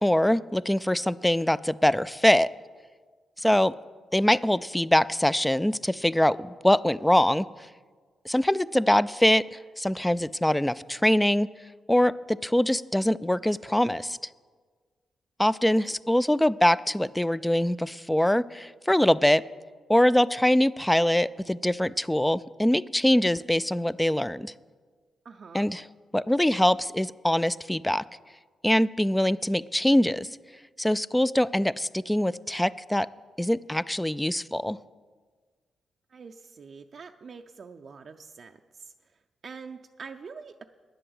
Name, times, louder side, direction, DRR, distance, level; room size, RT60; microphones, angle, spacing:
voice 1, 0.0-2.5 3.4-3.7 4.1-7.5 8.3-11.5 11.9-14.2 15.4-19.4 19.9-24.5 25.5-25.8 26.1-28.0 28.6-30.3 30.8-33.1 33.4-34.8, left 1 dB, 10° left, 17 dB, 0.3 m, -23 dB
voice 2, 25.2-25.7 36.1-39.1 39.4-40.7, right 5 dB, 55° right, 4 dB, 0.5 m, -45 dB
9.9 x 7.9 x 7.9 m, 1.5 s
cardioid pair, 60°, 0 cm